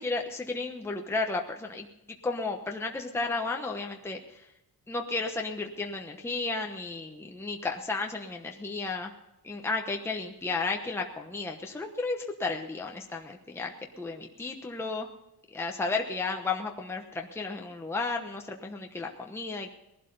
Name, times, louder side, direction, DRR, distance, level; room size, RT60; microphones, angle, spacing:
voice 1, 0.0-1.9 2.2-4.5 4.9-9.1 9.4-15.1 15.5-19.7, left 3 dB, 5° left, 2 dB, 1.0 m, -33 dB
19.5 x 12.0 x 5.3 m, 0.88 s
wide cardioid pair, 175°, 37 cm